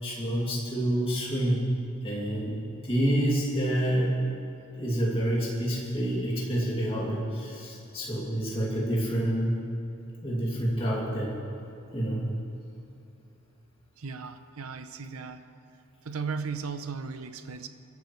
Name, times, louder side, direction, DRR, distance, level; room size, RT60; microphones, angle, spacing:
voice 1, 0.0-1.6 2.0-4.2 4.7-9.6 10.2-11.3 11.9-12.2, right 1 dB, 25° left, -5 dB, 2.6 m, -28 dB
voice 2, 14.0-15.4 16.0-17.7, right 5 dB, 75° right, 9 dB, 0.7 m, -36 dB
24.5 x 11.0 x 3.3 m, 2.8 s
head